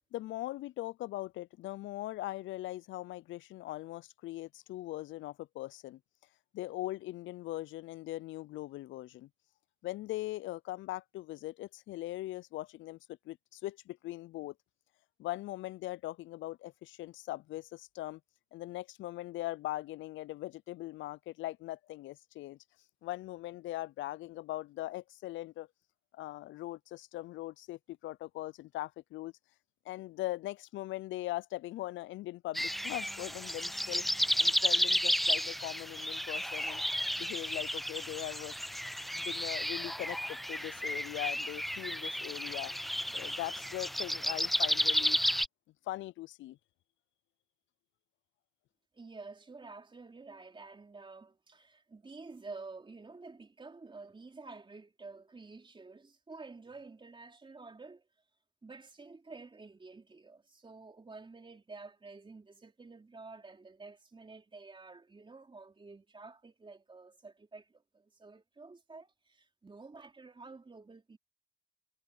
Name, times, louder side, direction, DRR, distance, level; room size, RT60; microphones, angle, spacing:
voice 1, 0.1-6.0 6.5-9.3 9.8-13.0 13.3-14.5 15.2-18.2 18.5-22.6 23.0-25.7 26.1-29.3 29.9-34.1 34.4-36.8 37.2-38.5 39.1-42.7 43.1-45.2 45.9-46.6, left 16 dB, 75° left, 0.4 m, -40 dB
sound 1, 32.5-45.5, equal, ahead, 0.4 m, -32 dB
voice 2, 48.9-58.1 58.6-71.2, right 3 dB, 25° right, 3.9 m, -50 dB
cardioid pair, 90°, 20 cm